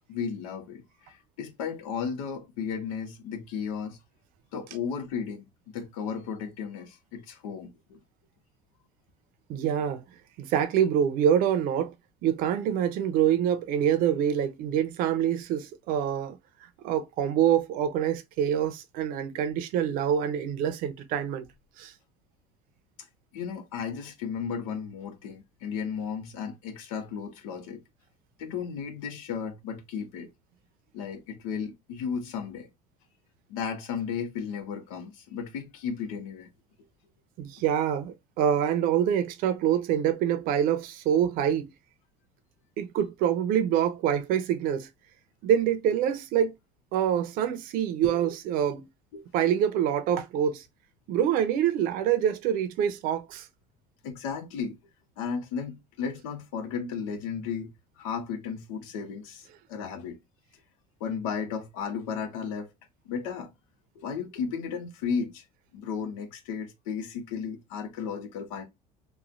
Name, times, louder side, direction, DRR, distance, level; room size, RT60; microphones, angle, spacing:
voice 1, 0.1-4.0 4.5-5.4 5.7-8.0 23.0-23.1 23.3-27.8 28.4-30.3 30.9-32.7 33.5-36.5 42.8-42.9 48.0-48.3 49.1-49.2 54.0-54.8 55.2-60.2 61.0-62.7 63.0-63.5 63.9-65.5 65.7-68.6, left 6 dB, 90° left, 0.8 m, -34 dB
voice 2, 9.5-10.0 10.4-11.9 12.2-16.4 16.8-21.5 21.8-21.9 37.4-41.7 42.8-44.9 45.4-46.5 46.9-48.9 49.3-50.6 51.1-53.5, right 9 dB, 60° right, 0.6 m, -26 dB
3.1 x 2.3 x 2.5 m
supercardioid pair, 120°, 17 cm